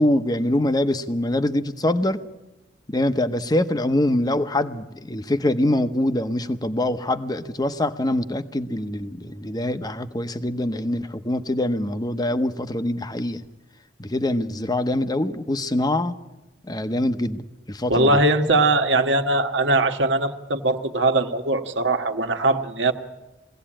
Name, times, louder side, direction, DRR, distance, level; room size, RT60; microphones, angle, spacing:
voice 1, 0.0-2.2 2.9-13.4 14.0-16.1 16.7-18.2, left 1 dB, 20° left, 10 dB, 0.8 m, -24 dB
voice 2, 17.9-22.9, right 2 dB, 90° right, 5 dB, 1.4 m, -20 dB
22.0 x 16.5 x 8.8 m, 1.0 s
head